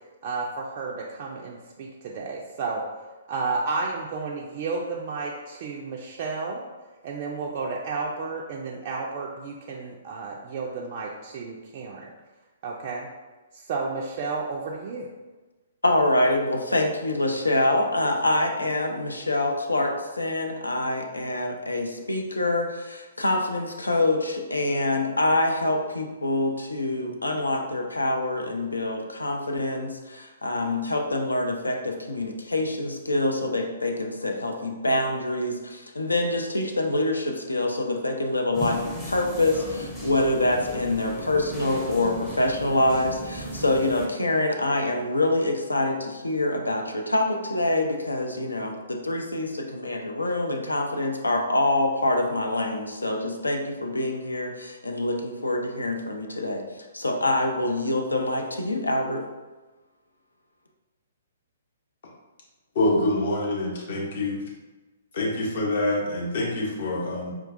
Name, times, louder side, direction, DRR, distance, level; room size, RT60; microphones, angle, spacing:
voice 1, 0.2-2.8 3.3-6.6 7.0-12.1 12.6-13.1 13.5-15.1, right 4 dB, 40° right, -2 dB, 0.3 m, -32 dB
voice 2, 15.8-56.6 56.9-59.2, left 2 dB, 80° left, 3 dB, 0.5 m, -25 dB
sound 1, 38.5-44.1, equal, 10° left, 0.6 m, -36 dB
voice 3, 62.7-64.4 65.1-67.3, left 1 dB, 50° left, -3 dB, 0.9 m, -26 dB
4.4 x 2.3 x 2.5 m, 1.2 s
figure-of-eight pair, 120°, 0 cm